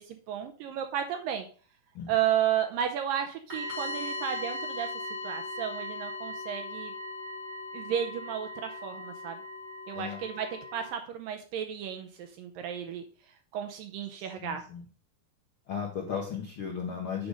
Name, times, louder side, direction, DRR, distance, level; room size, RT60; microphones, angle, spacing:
voice 1, 0.0-1.5 2.1-4.9 5.2-6.9 7.7-9.4 9.9-13.0 13.5-14.6, right 9 dB, 80° right, 6 dB, 2.1 m, -33 dB
sound 1, 3.5-10.9, left 2 dB, 10° right, 3.4 m, -38 dB
voice 2, 14.4-14.8 15.7-17.3, left 7 dB, 75° left, 0 dB, 1.2 m, -35 dB
8.9 x 5.2 x 4.9 m, 0.41 s
omnidirectional pair, 4.5 m